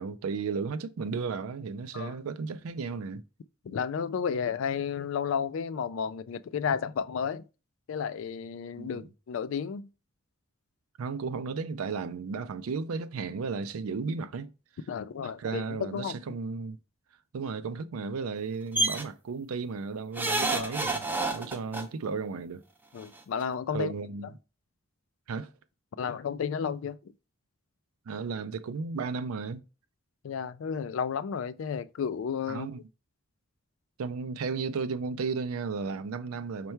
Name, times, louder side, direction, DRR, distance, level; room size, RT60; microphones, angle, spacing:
voice 1, 0.0-3.2 8.8-9.1 11.0-14.5 15.2-16.8 17.3-21.1 21.3-22.6 23.7-24.3 25.3-25.5 28.1-29.6 32.5-32.8 34.0-36.7, right 4 dB, 85° right, 0.4 m, -34 dB
voice 2, 3.6-7.4 7.9-9.9 14.9-16.2 20.5-20.7 22.9-23.9 26.0-27.1 30.2-32.7, left 7 dB, 65° left, 0.3 m, -32 dB
sound 1, 18.7-19.0 20.2-21.8 23.0-23.1 23.4-23.5, right 2 dB, 10° right, 0.4 m, -28 dB
5.4 x 2.2 x 4.4 m
head